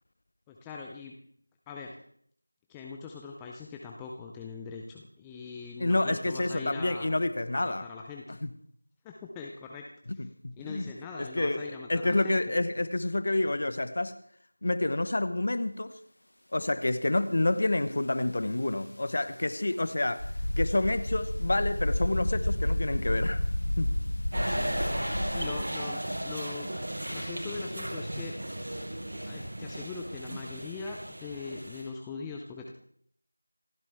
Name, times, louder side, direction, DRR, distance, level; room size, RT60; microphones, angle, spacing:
voice 1, 0.5-1.1 1.7-2.0 2.7-7.1 7.5-8.2 9.0-9.9 10.1-10.3 10.6-12.4 24.5-26.7 27.1-28.3 29.3-32.7, left 4 dB, 5° left, 0 dB, 0.5 m, -41 dB
voice 2, 5.8-7.9 8.4-8.5 10.1-10.9 11.2-11.6 11.9-14.1 14.6-15.9 16.5-20.2 20.6-23.4 23.8-23.9, left 2 dB, 35° left, 13 dB, 0.9 m, -28 dB
sound 1, 20.2-25.6, left 1 dB, 65° left, 0.9 m, -30 dB
sound 2, 24.3-31.8, right 1 dB, 55° right, 6.5 m, -35 dB
27.5 x 11.0 x 3.5 m, 0.63 s
figure-of-eight pair, 175°, 0 cm